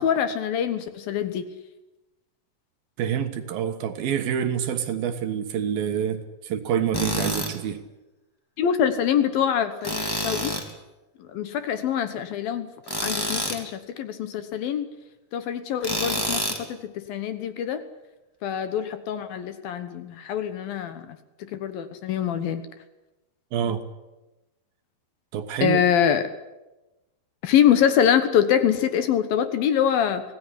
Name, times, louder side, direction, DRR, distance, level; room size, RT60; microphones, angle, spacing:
voice 1, 0.0-1.4 8.6-10.5 11.3-12.7 13.0-14.9 15.3-17.8 18.4-21.2 21.5-22.6 25.6-26.2 27.4-30.2, left 9 dB, 70° left, 11 dB, 2.7 m, -24 dB
voice 2, 3.0-7.8 23.5-23.8 25.3-25.8, right 8 dB, 65° right, 8 dB, 3.0 m, -27 dB
Tools, 6.9-7.5 9.8-10.7 12.9-13.6 15.8-16.6, equal, 5° left, 1.9 m, -27 dB
25.0 x 17.5 x 10.0 m, 1.0 s
omnidirectional pair, 4.8 m